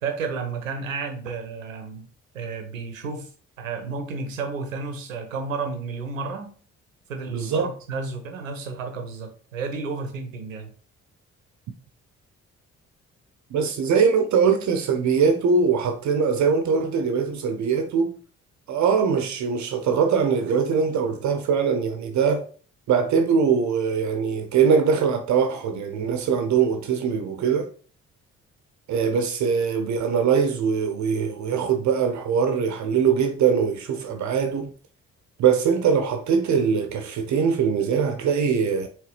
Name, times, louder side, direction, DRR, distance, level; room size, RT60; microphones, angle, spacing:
voice 1, 0.0-2.1 2.3-3.3 3.6-6.5 7.1-10.7, right 4 dB, 90° right, 0.7 m, -32 dB
voice 2, 7.3-7.7 13.5-18.2 18.7-22.5 22.9-27.7 28.9-34.7 35.4-38.9, right 6 dB, 50° right, 0.6 m, -22 dB
4.7 x 3.3 x 3.2 m
figure-of-eight pair, 40°, 38 cm